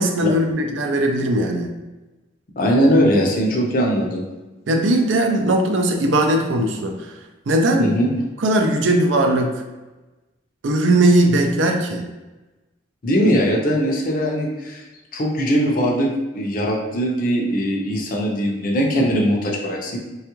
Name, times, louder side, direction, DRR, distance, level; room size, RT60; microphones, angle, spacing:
voice 1, 0.0-1.7 4.7-7.2 7.5-8.0 8.4-9.6 10.6-12.1, right 1 dB, 80° right, 4 dB, 0.4 m, -19 dB
voice 2, 2.6-4.2 7.8-8.1 13.0-14.8 15.1-16.1 16.3-20.0, equal, 45° left, 0 dB, 0.5 m, -20 dB
3.3 x 2.3 x 3.0 m, 1.1 s
head